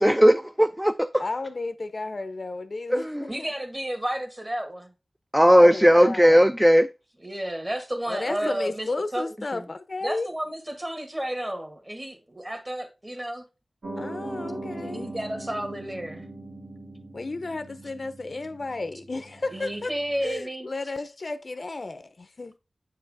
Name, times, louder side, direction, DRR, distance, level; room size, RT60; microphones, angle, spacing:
voice 1, 0.0-1.2 2.9-3.3 5.3-6.9, equal, 5° right, 0.3 m, -17 dB
voice 2, 1.2-3.5 5.5-6.5 8.1-10.3 14.0-15.1 17.1-19.9 20.2-22.6, left 3 dB, 60° left, 0.5 m, -33 dB
voice 3, 3.3-4.9 7.2-9.3 10.0-13.4 14.7-16.3 19.5-20.9, right 1 dB, 25° right, 1.6 m, -32 dB
Piano, 13.8-20.4, right 2 dB, 80° right, 2.3 m, -40 dB
8.2 x 4.7 x 3.5 m
wide cardioid pair, 80°, 0 cm